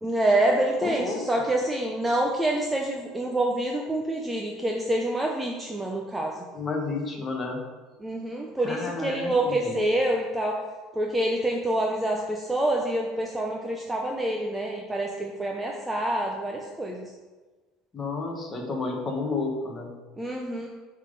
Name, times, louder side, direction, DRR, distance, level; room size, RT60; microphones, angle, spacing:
voice 1, 0.0-6.4 8.0-10.6 10.9-17.1 20.2-20.7, right 1 dB, 5° right, 0 dB, 0.5 m, -27 dB
voice 2, 0.8-1.2 6.5-7.6 8.6-9.8 17.9-19.9, left 3 dB, 15° left, 1 dB, 1.1 m, -31 dB
8.5 x 3.7 x 5.1 m, 1.3 s
cardioid pair, 165°, 0 cm